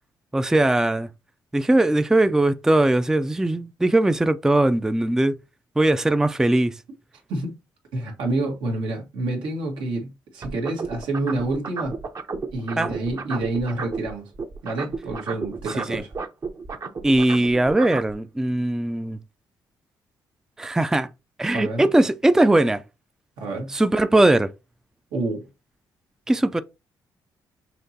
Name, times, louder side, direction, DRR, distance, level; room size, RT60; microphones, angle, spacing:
voice 1, 0.3-1.1 1.5-5.3 5.8-6.7 12.8-13.0 15.8-16.0 17.0-19.2 20.6-21.1 21.4-22.8 23.7-24.5 26.3-26.6, right 1 dB, 5° right, 0.3 m, -20 dB
voice 2, 7.9-12.0 12.5-14.3 14.6-16.1 21.5-21.9 23.4-23.7 25.1-25.5, right 2 dB, 85° right, 1.5 m, -28 dB
sound 1, 10.4-14.1 14.3-18.1, right 4 dB, 40° right, 0.7 m, -32 dB
5.8 x 2.9 x 2.8 m
cardioid pair, 80°, 8 cm